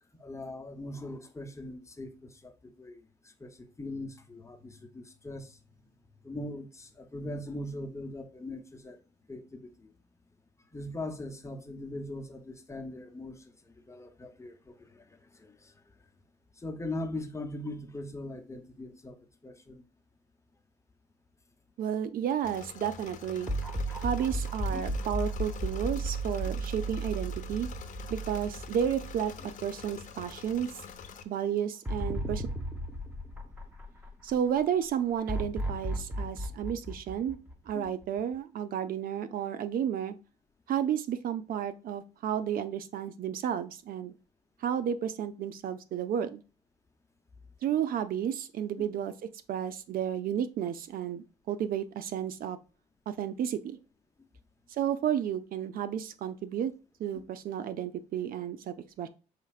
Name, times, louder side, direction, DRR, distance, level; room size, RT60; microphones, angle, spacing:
voice 1, 0.2-2.5 2.8-3.0 3.4-5.5 6.2-9.0 9.3-9.7 10.7-13.4 13.9-15.0 15.3-15.7 16.6-19.2 19.4-19.8 23.9-24.0 24.7-24.9 37.7-37.9 48.8-48.9 57.1-57.2, left 1 dB, 20° left, 0.9 m, -40 dB
voice 2, 21.8-23.5 24.0-27.7 28.1-30.8 31.3-32.5 34.2-37.4 37.7-40.1 40.7-44.1 44.6-46.4 47.6-49.1 49.5-52.6 53.1-53.8 54.7-56.7 57.0-59.1, right 9 dB, 65° right, 0.5 m, -32 dB
Engine / Mechanisms, 22.4-31.2, left 6 dB, 55° left, 0.8 m, -46 dB
sound 1, 23.5-29.8 30.2-30.3 31.9-34.3 35.3-38.0, right 1 dB, 10° right, 1.1 m, -35 dB
4.9 x 4.3 x 2.4 m
supercardioid pair, 75°, 16 cm